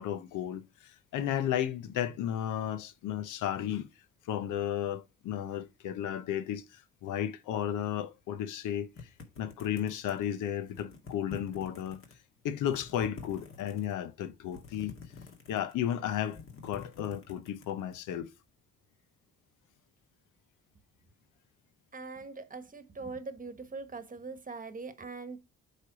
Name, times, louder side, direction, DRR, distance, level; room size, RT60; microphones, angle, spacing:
voice 1, 0.0-3.9 4.2-9.1 9.4-12.0 12.4-14.9 15.5-18.3, left 10 dB, 85° left, 0.8 m, -34 dB
sound 1, 8.9-10.3 10.7-12.1 12.5-13.9 14.4-15.8 16.1-18.0, left 5 dB, 45° left, 1.9 m, -48 dB
voice 2, 21.9-25.4, right 4 dB, 25° right, 1.1 m, -42 dB
8.4 x 3.4 x 4.9 m
cardioid pair, 90°, 30 cm